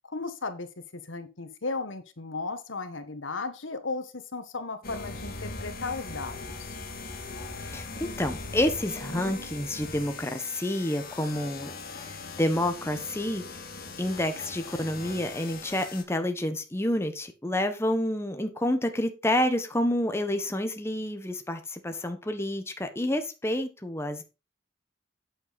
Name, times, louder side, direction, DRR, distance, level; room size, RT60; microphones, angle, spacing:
voice 1, 0.1-6.7, left 3 dB, 85° left, 9 dB, 1.4 m, -35 dB
sound 1, 4.8-16.0, left 3 dB, 50° left, 1.9 m, -40 dB
voice 2, 7.6-11.7 12.0-13.4 14.0-24.2, left 1 dB, 15° left, 7 dB, 1.2 m, -29 dB
8.6 x 7.9 x 4.1 m, 0.27 s
head